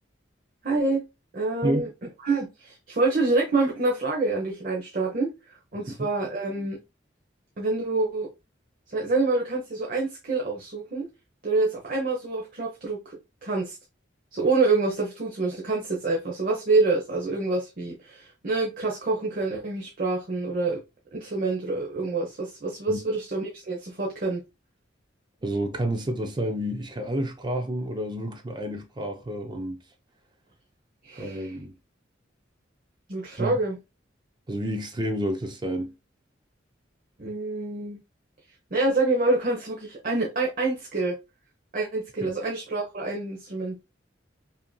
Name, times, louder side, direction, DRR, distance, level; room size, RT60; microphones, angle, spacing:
voice 1, 0.6-1.0 1.3-1.9 2.2-6.8 7.6-8.3 8.9-11.1 11.4-13.8 14.3-20.8 21.1-24.4 31.0-31.5 33.1-33.8 37.2-38.0 38.7-41.2 41.7-43.8, right 3 dB, 50° right, 0.9 m, -27 dB
voice 2, 25.4-29.8 31.1-31.7 33.4-33.6 34.5-35.9 42.2-42.3, right 1 dB, 25° right, 0.5 m, -29 dB
5.5 x 2.7 x 2.2 m
head